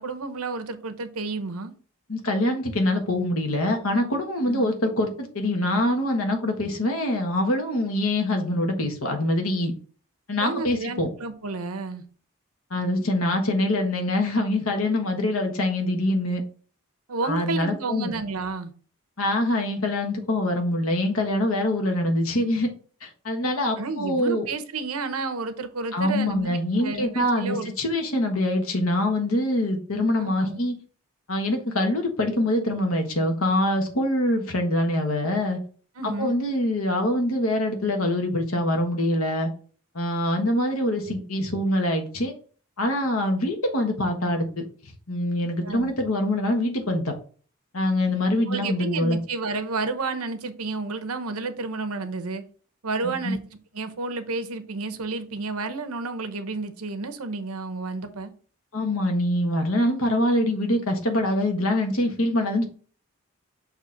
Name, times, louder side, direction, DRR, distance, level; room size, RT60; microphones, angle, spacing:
voice 1, 0.0-1.7 4.5-4.7 10.4-12.0 17.1-18.7 23.8-27.7 30.2-30.6 36.0-36.4 45.6-45.9 48.5-52.4 52.8-53.4 53.7-58.3, right 3 dB, 90° right, 0.9 m, -31 dB
voice 2, 2.1-9.7 10.3-11.1 12.7-16.4 17.2-18.1 19.2-22.7 23.0-24.5 25.9-30.8 31.3-35.6 36.0-39.5 39.9-42.3 42.8-44.6 45.1-47.1 47.7-49.2 53.0-53.3 58.7-62.6, left 1 dB, 75° left, 1.4 m, -24 dB
6.4 x 3.1 x 5.1 m
head